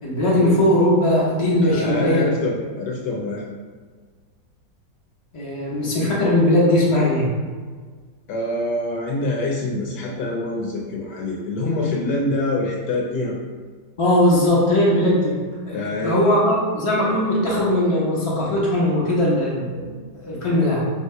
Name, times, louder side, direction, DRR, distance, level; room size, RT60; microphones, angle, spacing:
voice 1, 0.0-2.3 5.3-7.3 14.0-15.4 15.6-19.9 20.2-20.8, left 1 dB, 50° left, -6 dB, 0.3 m, -19 dB
voice 2, 1.6-3.4 8.3-13.4 15.7-16.2, left 2 dB, 75° left, -2 dB, 1.1 m, -25 dB
3.0 x 2.8 x 4.3 m, 1.5 s
omnidirectional pair, 2.0 m